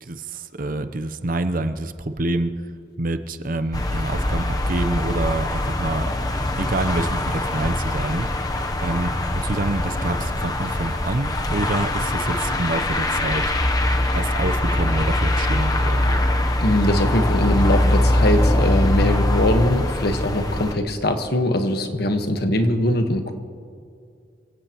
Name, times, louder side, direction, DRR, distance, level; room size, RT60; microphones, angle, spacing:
voice 1, 0.0-2.5 3.0-6.0 6.6-8.3 8.8-13.4 14.1-16.1, right 2 dB, 50° right, 10 dB, 0.8 m, -27 dB
sound 1, 3.7-20.7, left 1 dB, 20° left, 0.9 m, -22 dB
voice 2, 16.6-23.3, left 1 dB, 60° left, 6 dB, 1.4 m, -21 dB
27.5 x 16.5 x 3.0 m, 2.4 s
head